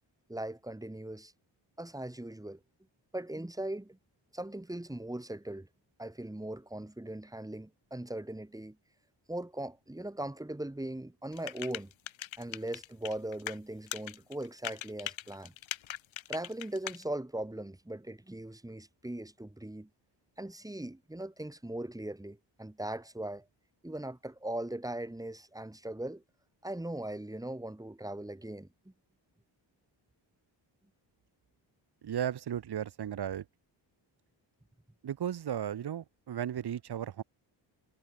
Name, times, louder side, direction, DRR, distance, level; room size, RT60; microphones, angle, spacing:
voice 1, 0.3-1.3 1.8-2.6 3.1-4.0 4.3-5.7 6.0-8.8 9.3-11.9 12.4-15.5 16.3-19.9 20.4-23.5 23.8-26.2 26.6-28.9, right 1 dB, 10° right, 7.3 m, -39 dB
sound 1, 11.3-13.6 13.9-17.0, left 12 dB, 85° left, 3.0 m, -40 dB
voice 2, 32.0-33.4 35.0-37.2, right 9 dB, 55° right, 2.2 m, -35 dB
cardioid pair, 135°, 46 cm